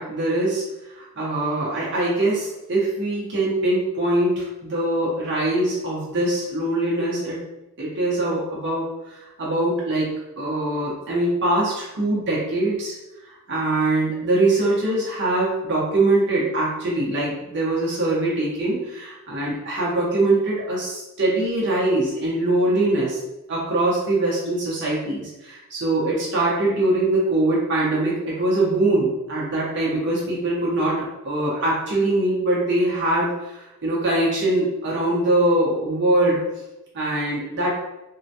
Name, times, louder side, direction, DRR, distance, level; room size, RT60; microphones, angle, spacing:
voice 1, 0.0-7.4 7.8-10.1 10.4-12.9 13.2-23.2 23.5-31.0 31.2-36.4 36.9-37.8, right 2 dB, 55° right, -6 dB, 0.9 m, -23 dB
3.6 x 2.2 x 2.8 m, 0.98 s
head